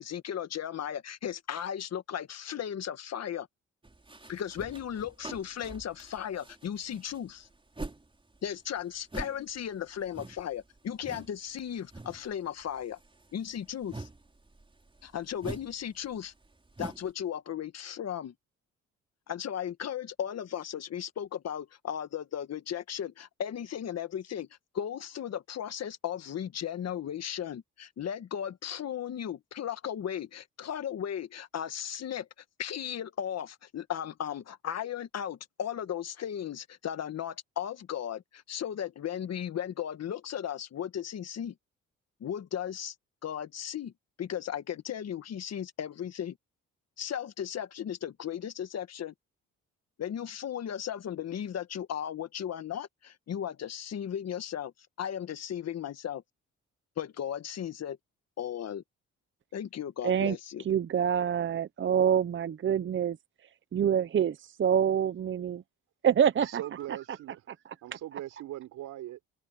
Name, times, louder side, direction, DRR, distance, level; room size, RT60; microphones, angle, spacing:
voice 1, 0.0-3.5 4.3-7.5 8.4-13.0 13.3-14.1 15.0-16.3 16.8-18.3 19.3-24.5 24.7-32.3 32.6-41.5 42.2-42.9 43.2-43.9 44.2-46.4 47.0-49.1 50.0-54.7 55.0-56.2 57.0-58.0 58.4-58.8 59.5-60.7, left 9 dB, 55° left, 1.6 m, -36 dB
sound 1, 3.8-8.1 8.3-11.4 11.6-12.3 12.6-17.1, right 2 dB, 15° right, 4.7 m, -44 dB
voice 2, 60.0-60.4 60.6-63.2 63.7-65.6 66.0-66.6, right 8 dB, 40° right, 0.7 m, -26 dB
voice 3, 66.4-67.4 67.8-69.2, right 14 dB, 85° right, 5.2 m, -40 dB
open air
cardioid pair, 90°, 30 cm